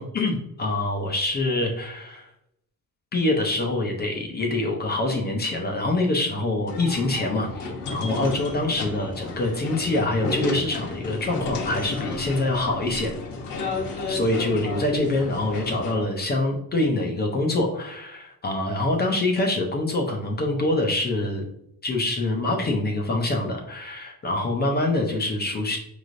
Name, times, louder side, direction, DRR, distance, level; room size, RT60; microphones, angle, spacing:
voice 1, 0.0-2.3 3.1-13.1 14.1-21.4 21.8-25.8, left 2 dB, 25° left, 1 dB, 0.5 m, -25 dB
sound 1, 6.7-15.9, left 3 dB, 75° left, 1.2 m, -32 dB
5.2 x 3.2 x 2.5 m, 0.78 s
cardioid pair, 170°, 40 cm